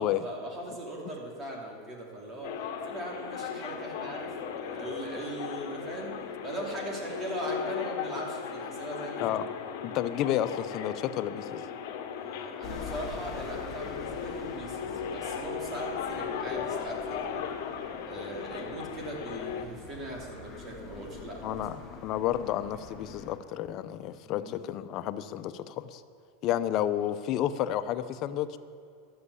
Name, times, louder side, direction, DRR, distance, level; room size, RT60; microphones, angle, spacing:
voice 1, 0.0-9.4 12.1-17.5 18.1-21.7 24.3-24.5, right 1 dB, 25° right, -1 dB, 2.9 m, -39 dB
sound 1, 2.4-19.6, left 7 dB, 65° left, 1.3 m, -37 dB
voice 2, 9.8-11.6 21.4-26.0 26.4-28.6, left 11 dB, 45° left, 12 dB, 0.6 m, -31 dB
sound 2, 12.6-23.4, left 4 dB, 15° left, 2.0 m, -46 dB
12.0 x 7.9 x 8.2 m, 2.4 s
supercardioid pair, 135°, 0 cm